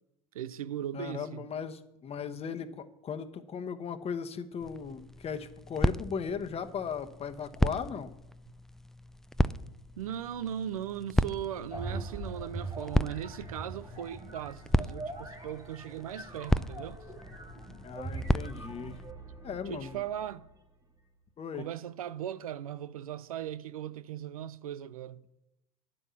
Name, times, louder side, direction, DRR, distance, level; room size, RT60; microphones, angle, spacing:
voice 1, 0.3-1.5 10.0-17.0 19.7-20.5 21.5-25.2, right 10 dB, 90° right, 0.5 m, -38 dB
voice 2, 0.9-8.1 17.8-19.0 19.4-20.0 21.4-21.7, left 6 dB, 35° left, 1.0 m, -37 dB
sound 1, 4.6-19.1, equal, ahead, 0.3 m, -34 dB
sound 2, 11.7-20.5, right 2 dB, 20° right, 2.5 m, -42 dB
9.9 x 5.5 x 8.3 m
hypercardioid pair, 80°, 18 cm